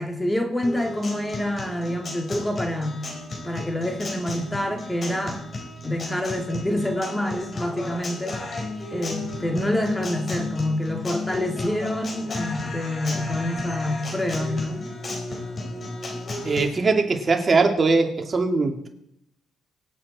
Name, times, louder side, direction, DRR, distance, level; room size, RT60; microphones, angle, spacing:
voice 1, 0.0-3.1 3.4-5.4 5.8-8.6 8.9-14.9, left 1 dB, 10° left, 3 dB, 2.6 m, -27 dB
Guitar, 0.6-16.6, left 2 dB, 40° left, 4.3 m, -34 dB
voice 2, 16.4-18.9, right 3 dB, 35° right, 3 dB, 2.6 m, -21 dB
24.5 x 8.4 x 4.4 m, 0.78 s
cardioid pair, 90°, 0 cm